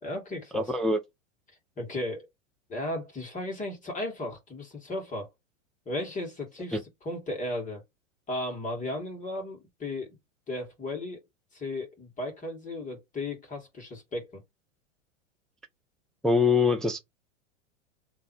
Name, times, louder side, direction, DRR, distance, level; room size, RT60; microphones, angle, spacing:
voice 1, 0.0-0.7 1.8-2.3 2.7-5.3 5.9-7.8 8.3-10.2 10.5-11.2 11.5-14.4, left 1 dB, 20° left, 2.0 m, -35 dB
voice 2, 0.5-1.0 6.7-6.8 16.2-17.0, left 4 dB, ahead, 0.4 m, -23 dB
3.3 x 2.8 x 4.4 m
hypercardioid pair, 120°, 38 cm